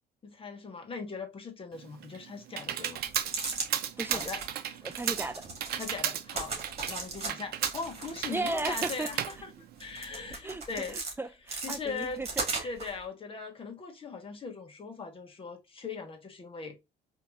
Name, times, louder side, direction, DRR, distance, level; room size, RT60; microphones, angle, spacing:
voice 1, 0.2-3.0 4.1-4.9 5.7-6.5 6.9-9.5 9.8-11.0 11.6-12.2 12.6-16.8, left 4 dB, 30° left, 1.3 m, -40 dB
Computer keyboard, 1.7-10.3, right 10 dB, 65° right, 0.6 m, -35 dB
sound 1, 3.0-3.7 4.0-4.5 4.9-6.0 6.3-7.3 7.6-9.4 9.8-11.1 11.5-12.9, right 3 dB, 40° right, 2.2 m, -37 dB
voice 2, 4.0-4.3 4.8-5.4 8.3-9.1 10.4-10.6 11.2-12.3 12.6-12.7, right 2 dB, 15° right, 0.4 m, -35 dB
4.3 x 2.9 x 2.4 m
cardioid pair, 110°, 17 cm